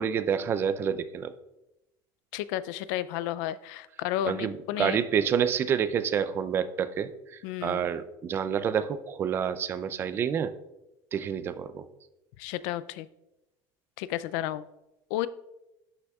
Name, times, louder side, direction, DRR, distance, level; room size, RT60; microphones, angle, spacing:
voice 1, 0.0-1.3 4.3-10.5 11.1-11.9, right 8 dB, 25° right, 12 dB, 0.4 m, -28 dB
voice 2, 2.3-5.0 7.4-7.8 12.4-13.1 14.0-14.6 15.1-15.3, left 13 dB, 80° left, 16 dB, 0.4 m, -32 dB
11.5 x 6.2 x 2.3 m, 0.91 s
cardioid pair, 175°, 10 cm